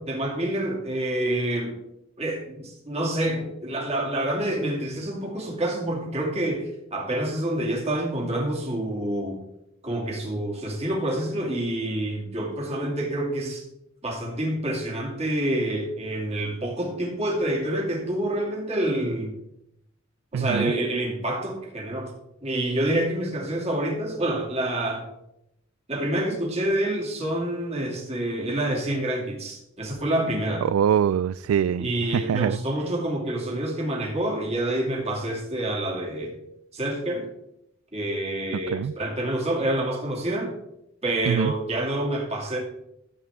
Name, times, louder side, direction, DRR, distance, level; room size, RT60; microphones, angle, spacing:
voice 1, 0.1-1.8 2.2-9.4 9.8-13.6 14.0-19.3 20.3-22.1 22.4-25.1 25.9-30.6 31.8-36.3 36.7-37.3 37.9-40.6 41.0-42.6, right 1 dB, 30° right, -1 dB, 2.6 m, -27 dB
voice 2, 20.3-20.7 30.6-32.6 38.7-38.9 41.3-41.5, right 8 dB, 85° right, 16 dB, 0.3 m, -24 dB
14.5 x 8.3 x 3.6 m, 0.81 s
head